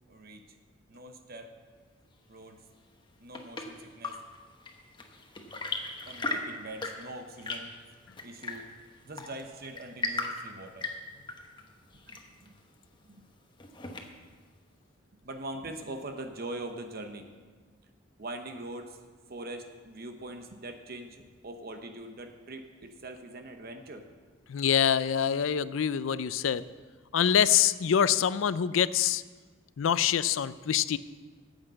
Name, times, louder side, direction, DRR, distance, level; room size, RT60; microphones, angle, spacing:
voice 1, 0.1-0.4 0.9-1.5 2.3-2.6 3.2-4.2 6.1-7.7 8.2-8.6 9.0-10.9 12.1-12.5 13.0-13.3 15.2-17.3 18.2-19.0 19.3-24.1, right 2 dB, 50° right, 6 dB, 1.0 m, -42 dB
Chirp tweet / Engine / Tap, 2.9-14.4, left 3 dB, 25° left, 1.1 m, -39 dB
voice 2, 24.5-26.6 27.1-29.2 29.8-31.0, left 8 dB, 80° left, 16 dB, 0.4 m, -25 dB
9.7 x 8.0 x 7.6 m, 1.5 s
head